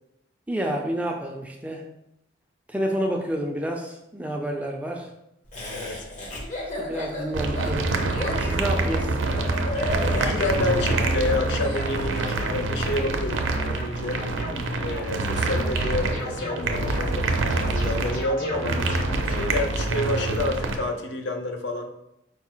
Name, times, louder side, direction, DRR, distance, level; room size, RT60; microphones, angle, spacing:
voice 1, 0.5-1.9 2.7-5.1 6.8-9.2, equal, 5° right, 2 dB, 0.3 m, -29 dB
Laughter, 5.5-11.9, left 1 dB, 40° left, 0.8 m, -33 dB
voice 2, 5.7-6.1 10.1-14.2 14.8-18.8 19.3-21.9, left 2 dB, 65° left, 5 dB, 0.5 m, -29 dB
sound 1, 7.3-20.7, right 2 dB, 85° right, 0.5 m, -26 dB
sound 2, 8.1-19.5, left 1 dB, 85° left, 1.3 m, -37 dB
4.7 x 2.0 x 4.4 m, 0.82 s
head